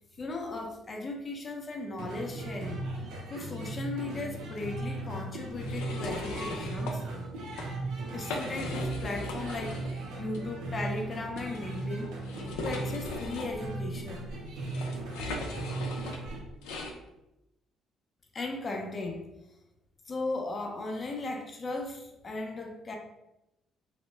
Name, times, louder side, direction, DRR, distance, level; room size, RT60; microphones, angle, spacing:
voice 1, 0.1-2.9 3.3-7.0 8.1-9.8 10.2-12.1 12.6-14.2 18.3-19.2 20.1-22.9, left 2 dB, 40° left, 2 dB, 0.5 m, -37 dB
sound 1, 2.0-16.4, right 2 dB, 80° right, 0.5 m, -37 dB
sound 2, 5.6-7.0 7.4-7.7 8.1-10.0 10.3-10.4 11.3-17.0, left 2 dB, 90° left, 0.3 m, -39 dB
2.1 x 2.0 x 3.2 m, 0.91 s
supercardioid pair, 70°, 0 cm